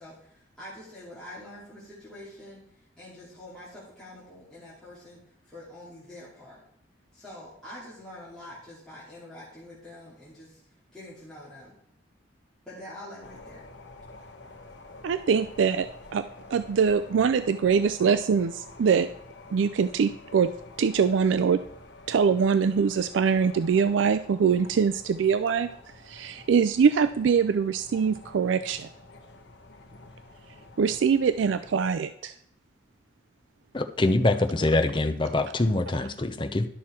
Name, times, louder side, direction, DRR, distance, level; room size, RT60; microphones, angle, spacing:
voice 1, 0.0-6.6 7.1-10.6 10.9-11.7 12.7-13.6, left 1 dB, 5° left, -10 dB, 2.7 m, -45 dB
sound 1, 13.2-31.9, left 2 dB, 65° left, 1.0 m, -48 dB
voice 2, 15.0-15.9 16.1-16.2 16.5-19.1 19.5-20.5 20.8-21.6 22.1-25.7 26.1-28.9 30.8-32.3, right 6 dB, 80° right, 12 dB, 0.4 m, -23 dB
voice 3, 33.7-36.7, left 2 dB, 25° left, 6 dB, 0.6 m, -24 dB
11.5 x 6.1 x 4.4 m, 0.71 s
head